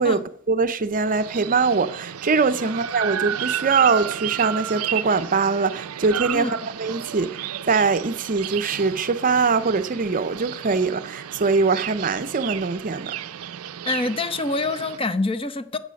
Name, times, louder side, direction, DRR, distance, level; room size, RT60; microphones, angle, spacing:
voice 1, 0.0-7.3 7.7-13.1, right 4 dB, 40° right, 0.6 m, -22 dB
sound 1, 1.0-15.0, right 10 dB, 85° right, 0.5 m, -32 dB
voice 2, 13.9-15.8, left 2 dB, 25° left, 0.8 m, -26 dB
14.0 x 8.4 x 5.2 m
head